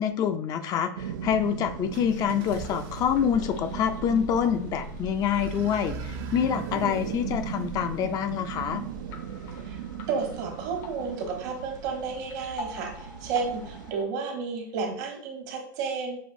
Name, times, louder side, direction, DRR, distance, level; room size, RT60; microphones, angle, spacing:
voice 1, 0.0-8.8, left 8 dB, 40° left, 9 dB, 0.4 m, -26 dB
sound 1, 1.0-13.9, right 8 dB, 90° right, 0.4 m, -38 dB
sound 2, 1.9-14.1, left 4 dB, 70° left, 0.8 m, -49 dB
sound 3, 1.9-8.8, right 3 dB, 50° right, 0.7 m, -42 dB
voice 2, 9.5-9.8 10.1-16.2, right 5 dB, 70° right, 2 dB, 1.3 m, -32 dB
6.2 x 2.5 x 2.6 m, 0.63 s
supercardioid pair, 120°, 10 cm